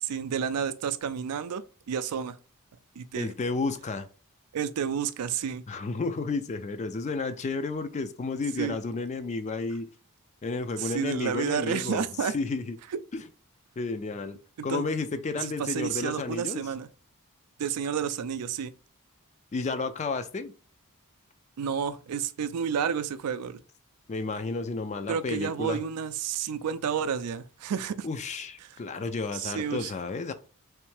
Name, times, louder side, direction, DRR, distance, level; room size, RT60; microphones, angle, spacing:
voice 1, 0.0-2.4 3.0-3.3 4.5-5.6 8.6-8.8 10.8-12.3 14.6-14.8 15.4-16.9 17.6-18.7 21.6-23.6 25.1-28.1 28.6-28.8 29.3-29.9, right 7 dB, 90° right, 0.4 m, -30 dB
voice 2, 3.2-4.1 5.7-9.9 10.4-12.8 13.1-13.2 13.8-14.4 14.6-16.6 19.5-20.5 24.1-25.8 28.0-30.3, left 3 dB, 30° left, 0.3 m, -32 dB
3.4 x 3.2 x 3.2 m
head